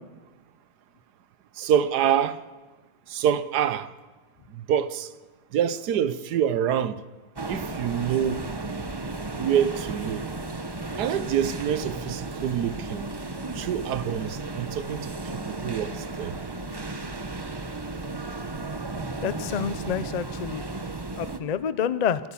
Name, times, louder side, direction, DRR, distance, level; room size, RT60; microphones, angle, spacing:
voice 1, 1.6-2.4 3.1-3.9 4.6-5.1 5.5-7.0 7.5-8.5 9.4-10.3 11.0-13.1 13.6-15.1 15.5-15.9 16.2-16.3, right 9 dB, 75° right, 1.4 m, -26 dB
sound 1, 7.4-21.4, right 2 dB, 20° right, 0.7 m, -34 dB
voice 2, 19.2-20.6 21.2-22.2, left 7 dB, 85° left, 0.3 m, -28 dB
28.5 x 13.5 x 7.1 m
omnidirectional pair, 1.7 m